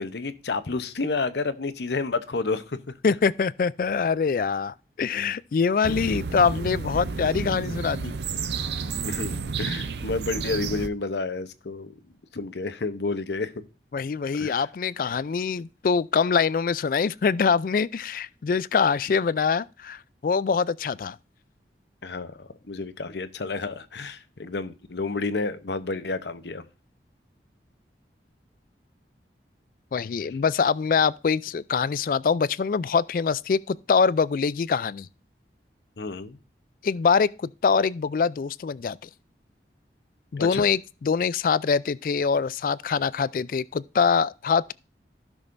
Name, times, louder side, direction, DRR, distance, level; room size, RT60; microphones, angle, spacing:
voice 1, 0.0-2.9 5.9-6.1 9.0-11.9 12.3-13.6 14.3-14.7 22.0-26.6 36.0-36.4 40.4-40.7, left 3 dB, 75° left, 0.8 m, -30 dB
voice 2, 3.0-8.1 13.9-21.2 29.9-35.1 36.8-39.1 40.3-44.7, left 5 dB, 50° left, 0.3 m, -24 dB
sound 1, 5.8-10.9, right 5 dB, 75° right, 0.6 m, -31 dB
15.5 x 6.2 x 2.6 m
head